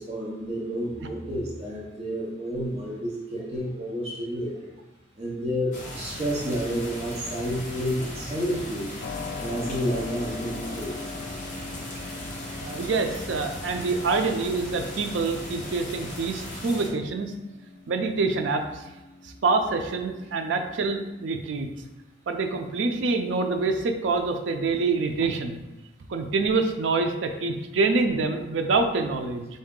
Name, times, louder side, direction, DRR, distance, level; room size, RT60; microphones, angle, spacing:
voice 1, 0.0-4.7 5.2-8.9 9.4-10.9, equal, 35° right, -5 dB, 0.7 m, -30 dB
sound 1, 5.7-16.9, left 1 dB, 40° left, 1.0 m, -38 dB
Keyboard (musical), 9.0-21.7, left 4 dB, 80° left, 0.3 m, -43 dB
voice 2, 12.6-17.3 17.9-18.9 19.2-21.7 22.3-25.6 26.1-29.5, right 3 dB, 85° right, 5 dB, 0.4 m, -26 dB
4.6 x 2.7 x 3.6 m, 1.1 s
head